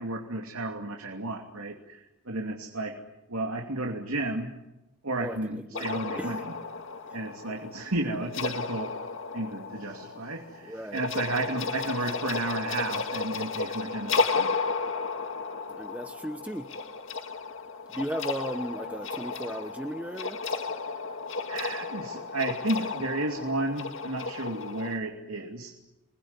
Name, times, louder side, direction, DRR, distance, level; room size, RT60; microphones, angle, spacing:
voice 1, 0.0-3.0 3.3-4.6 5.0-6.5 7.1-9.0 9.3-14.5 21.5-25.9, right 2 dB, 85° right, 2 dB, 2.8 m, -33 dB
voice 2, 5.2-6.4 10.6-11.4 15.8-16.7 17.9-20.4, right 1 dB, 5° right, 7 dB, 1.0 m, -36 dB
sound 1, 5.8-25.0, left 4 dB, 60° left, 2.0 m, -33 dB
28.0 x 20.5 x 9.8 m, 0.96 s
head